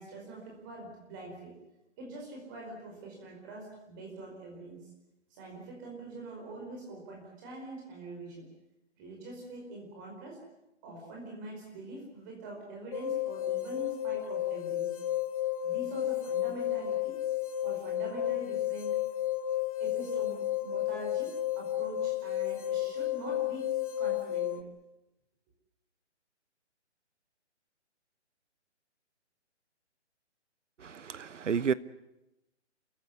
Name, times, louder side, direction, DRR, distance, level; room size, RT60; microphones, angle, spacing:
voice 1, 0.0-1.5 2.0-4.9 5.3-8.4 9.0-10.4 10.8-15.0 15.6-17.2 17.6-19.0 19.8-23.7 24.0-24.6, right 2 dB, 15° right, 4.9 m, -44 dB
sound 1, 12.9-24.6, left 12 dB, 30° left, 1.4 m, -32 dB
voice 2, 30.8-31.7, right 6 dB, 90° right, 1.1 m, -31 dB
28.0 x 15.0 x 9.6 m
hypercardioid pair, 175°, 36 cm